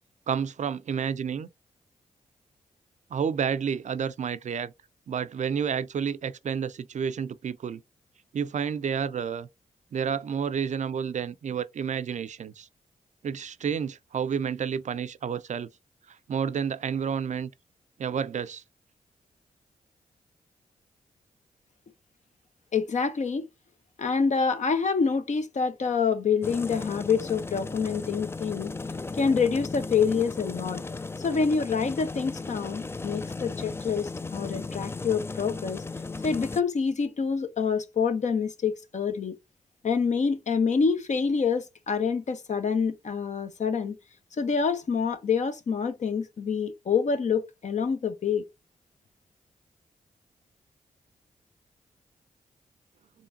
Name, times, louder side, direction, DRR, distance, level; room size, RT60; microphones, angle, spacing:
voice 1, 0.3-1.5 3.1-4.7 5.1-7.8 8.3-9.5 9.9-12.7 13.2-15.7 16.1-17.5 18.0-18.6, right 7 dB, 55° right, 0.4 m, -30 dB
voice 2, 22.7-23.5 24.0-28.7 29.1-30.8 31.2-35.8 36.2-39.3 39.8-44.0 44.4-48.4, left 5 dB, 55° left, 0.8 m, -27 dB
sound 1, 26.4-36.6, left 3 dB, 15° left, 0.3 m, -36 dB
3.8 x 3.5 x 2.6 m
supercardioid pair, 45°, 15 cm